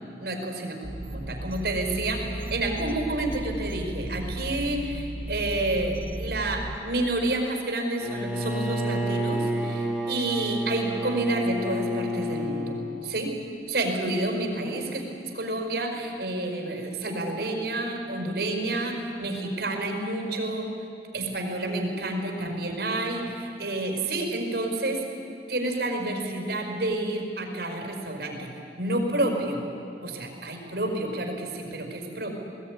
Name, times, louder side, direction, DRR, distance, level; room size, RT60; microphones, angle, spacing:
voice 1, 0.2-0.8 1.1-9.7 10.1-12.7 13.0-13.3 13.7-20.7 21.1-25.0 25.5-28.5 28.8-29.6 30.0-32.4, right 2 dB, 70° right, 2 dB, 5.2 m, -29 dB
sound 1, 0.8-6.8, right 1 dB, 30° right, 1.0 m, -35 dB
Bowed string instrument, 8.0-12.8, equal, 5° right, 3.3 m, -29 dB
21.5 x 18.0 x 9.7 m, 2.5 s
head